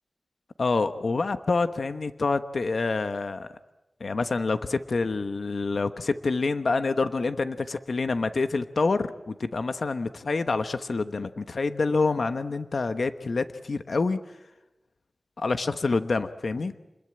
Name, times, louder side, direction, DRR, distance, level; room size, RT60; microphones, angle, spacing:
voice 1, 0.6-3.5 4.0-14.2 15.4-16.7, left 3 dB, 75° left, 10 dB, 1.1 m, -27 dB
28.5 x 21.5 x 8.8 m, 1.0 s
wide cardioid pair, 70°, 0 cm